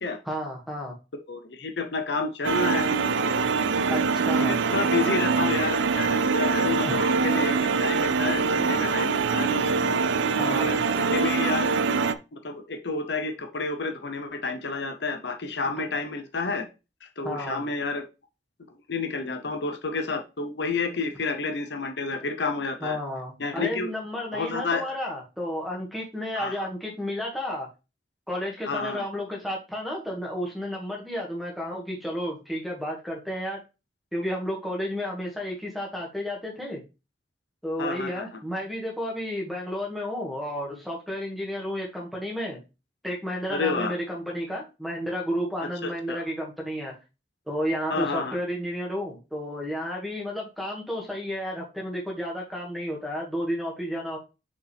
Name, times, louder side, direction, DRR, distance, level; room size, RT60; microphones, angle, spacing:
voice 1, 0.3-0.9 3.9-4.0 4.3-4.6 6.9-7.0 10.4-10.8 17.2-17.6 22.8-27.7 28.3-33.6 34.1-36.8 37.6-42.6 43.0-46.9 47.5-54.2, equal, ahead, -1 dB, 1.8 m, -32 dB
voice 2, 1.3-3.0 3.8-4.0 4.4-9.7 10.4-11.7 12.3-16.7 17.0-18.0 18.9-23.0 23.4-23.9 24.3-24.8 26.3-26.7 28.7-29.0 37.8-38.2 43.5-43.9 45.8-46.2 47.9-48.4, left 4 dB, 70° left, 6 dB, 0.8 m, -30 dB
sound 1, 2.4-12.1, right 5 dB, 85° right, 0.5 m, -24 dB
6.6 x 5.3 x 3.4 m, 0.28 s
head